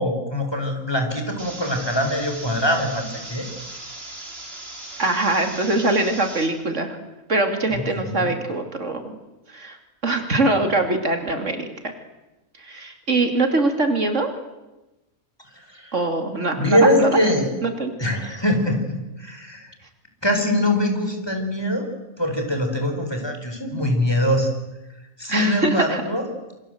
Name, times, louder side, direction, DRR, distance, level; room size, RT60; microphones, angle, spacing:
voice 1, 0.0-3.7 7.7-8.3 15.7-15.9 16.6-17.5 18.0-19.7 20.2-21.9 22.2-24.5 25.2-26.2, left 1 dB, 20° left, 4 dB, 4.8 m, -23 dB
sound 1, 1.4-6.5, right 2 dB, 50° right, 4.0 m, -38 dB
voice 2, 5.0-7.0 7.3-9.2 9.5-9.8 10.0-11.9 12.6-14.3 15.9-17.2 17.6-17.9 25.3-26.0, right 2 dB, 70° right, 6 dB, 3.1 m, -23 dB
27.5 x 25.0 x 7.9 m, 1.0 s
omnidirectional pair, 1.3 m